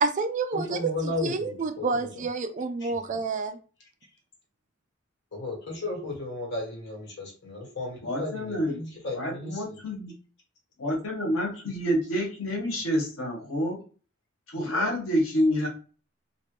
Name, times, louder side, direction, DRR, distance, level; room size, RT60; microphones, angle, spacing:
voice 1, 0.0-0.9 1.2-3.6, right 4 dB, 40° right, 7 dB, 0.4 m, -28 dB
voice 2, 0.5-2.2 2.8-3.2 5.3-9.8, left 2 dB, 55° left, -2 dB, 1.5 m, -35 dB
voice 3, 8.0-8.8 9.1-10.1 10.8-13.8 14.5-15.7, equal, 90° left, 0 dB, 1.2 m, -28 dB
2.9 x 2.5 x 3.1 m, 0.37 s
head